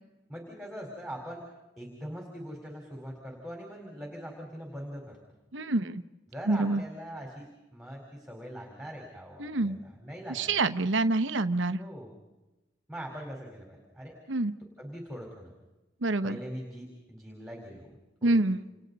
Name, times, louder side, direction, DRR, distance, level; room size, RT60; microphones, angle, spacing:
voice 1, 0.3-1.5 1.8-5.2 6.3-10.6 11.7-12.1 12.9-14.2 14.8-15.6 16.2-17.9 18.2-18.4, equal, ahead, 0 dB, 4.3 m, -42 dB
voice 2, 5.5-6.0 6.5-6.8 9.4-9.8 10.3-11.8 14.3-14.5 16.0-16.4 18.2-18.6, right 2 dB, 80° right, 11 dB, 1.0 m, -26 dB
29.5 x 29.0 x 4.1 m, 1.0 s
head